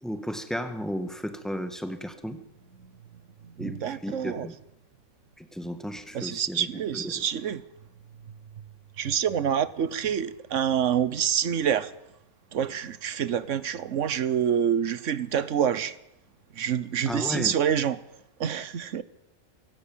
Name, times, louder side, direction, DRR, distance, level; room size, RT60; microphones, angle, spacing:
voice 1, 0.0-2.4 3.6-4.5 5.4-6.7 6.9-7.2 17.1-17.5, equal, ahead, 1.8 m, -34 dB
voice 2, 3.4-4.5 6.1-7.6 9.0-11.9 12.5-15.9 16.6-18.0 18.4-19.0, right 8 dB, 70° right, 1.3 m, -27 dB
24.0 x 16.5 x 7.5 m
omnidirectional pair, 1.3 m